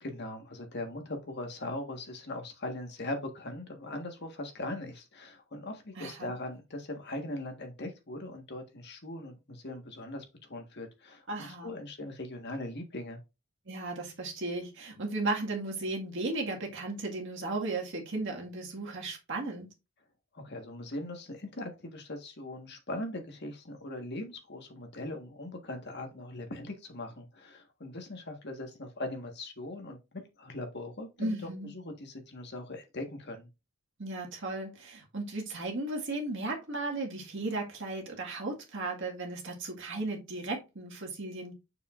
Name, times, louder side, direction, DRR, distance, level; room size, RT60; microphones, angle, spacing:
voice 1, 0.0-13.2 20.3-31.4 31.7-33.5, left 1 dB, 50° left, 1.5 m, -40 dB
voice 2, 6.0-6.3 11.3-11.7 13.7-19.7 31.2-31.7 34.0-41.5, right 2 dB, 55° right, 1.9 m, -35 dB
7.0 x 6.7 x 2.5 m
head